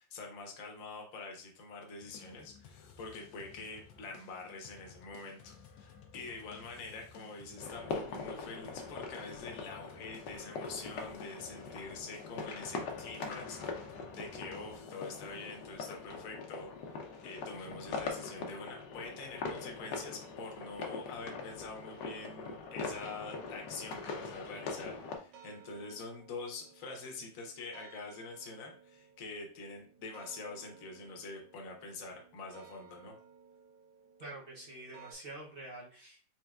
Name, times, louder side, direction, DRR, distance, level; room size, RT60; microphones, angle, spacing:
voice 1, 0.0-17.0 17.2-33.1, left 3 dB, 55° left, 2 dB, 1.2 m, -45 dB
sound 1, 2.0-17.7, left 7 dB, 90° left, 1.4 m, -57 dB
sound 2, 7.6-25.2, left 4 dB, 75° left, 1.3 m, -42 dB
sound 3, 22.7-35.1, right 7 dB, 75° right, 1.3 m, -59 dB
voice 2, 34.2-36.3, right 2 dB, 50° right, -2 dB, 0.7 m, -47 dB
4.3 x 3.6 x 2.3 m, 0.41 s
omnidirectional pair, 2.0 m